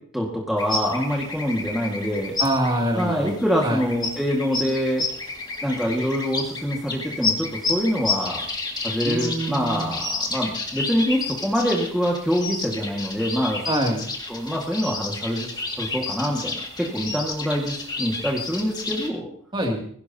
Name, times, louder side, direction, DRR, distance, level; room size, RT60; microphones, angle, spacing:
voice 1, 0.1-2.3 2.9-5.0 5.6-8.4 8.8-13.6 14.3-15.5 15.8-19.3, equal, ahead, -2 dB, 1.8 m, -25 dB
sound 1, 0.6-19.1, left 3 dB, 20° left, 2.2 m, -31 dB
voice 2, 2.4-3.3 3.6-3.8 9.0-10.0 13.6-14.1 19.5-19.8, right 1 dB, 25° right, 1 dB, 2.6 m, -25 dB
21.5 x 16.0 x 2.9 m, 0.63 s
head